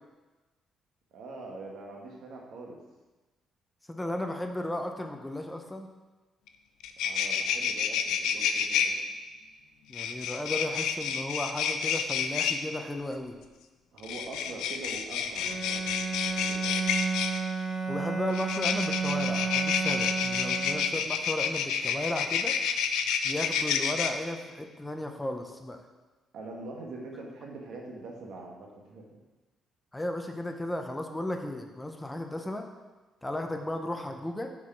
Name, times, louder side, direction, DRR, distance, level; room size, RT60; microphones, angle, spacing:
voice 1, 1.1-2.8 7.0-9.0 13.9-16.9 26.3-29.2, right 2 dB, 75° right, 0 dB, 1.4 m, -43 dB
voice 2, 3.9-5.9 9.9-13.4 17.9-22.6 23.2-25.8 29.9-32.7 33.2-34.5, left 1 dB, 10° left, 4 dB, 0.7 m, -35 dB
sound 1, 6.5-6.6 6.8-8.9 9.9-12.6 14.0-17.4 18.3-24.1, left 7 dB, 90° left, 0.5 m, -29 dB
Bowed string instrument, 15.4-21.2, right 5 dB, 30° right, 2.3 m, -32 dB
5.8 x 4.7 x 5.9 m, 1.2 s
cardioid pair, 90°, 0 cm